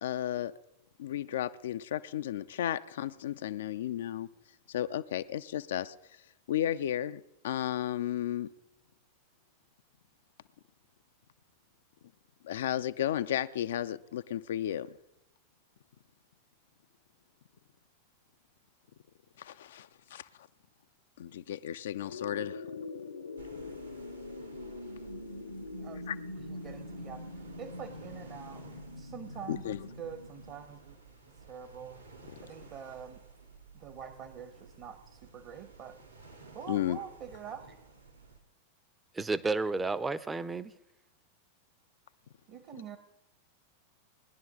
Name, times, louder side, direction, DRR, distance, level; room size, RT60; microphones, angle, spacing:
voice 1, 0.0-0.5 1.0-4.3 4.7-5.9 6.5-8.5 12.4-15.0 19.4-20.5 21.2-22.7 26.1-26.2 29.5-29.9 36.7-37.0, left 11 dB, 60° left, 0.4 m, -33 dB
sound 1, 22.1-30.6, left 2 dB, 75° left, 0.8 m, -43 dB
sound 2, 23.4-38.4, right 4 dB, 85° right, 2.0 m, -54 dB
voice 2, 25.8-28.6 29.0-31.0 31.3-32.0 32.4-33.2 33.7-36.0 36.5-37.8 42.5-43.0, right 7 dB, 40° right, 1.0 m, -46 dB
voice 3, 39.1-40.7, right 3 dB, 10° right, 0.6 m, -31 dB
20.0 x 10.5 x 3.6 m
figure-of-eight pair, 90°, 0 cm